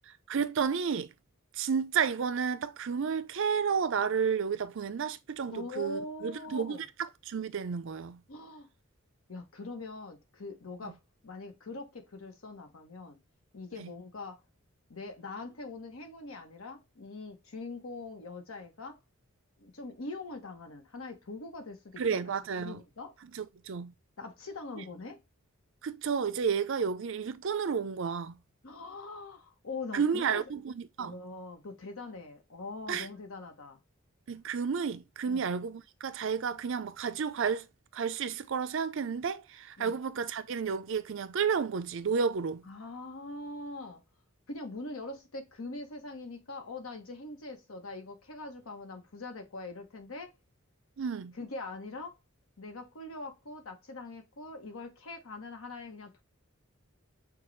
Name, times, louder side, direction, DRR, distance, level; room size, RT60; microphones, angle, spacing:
voice 1, 0.1-1.1 1.5-8.2 10.8-10.9 13.7-13.9 22.0-22.8 23.3-23.9 24.8-24.9 25.8-28.4 29.9-31.2 32.9-33.1 34.3-37.7 37.9-42.7 51.0-51.3, right 6 dB, 65° right, 0.5 m, -31 dB
voice 2, 5.5-6.8 8.3-8.7 9.3-11.0 11.2-13.2 13.5-14.4 14.9-19.0 19.6-22.0 22.6-23.2 24.2-25.2 28.6-30.4 31.0-33.8 35.2-35.5 39.8-40.0 42.7-44.0 44.5-50.3 51.4-52.2 52.6-56.2, left 3 dB, 80° left, 1.0 m, -42 dB
6.0 x 2.3 x 3.1 m
head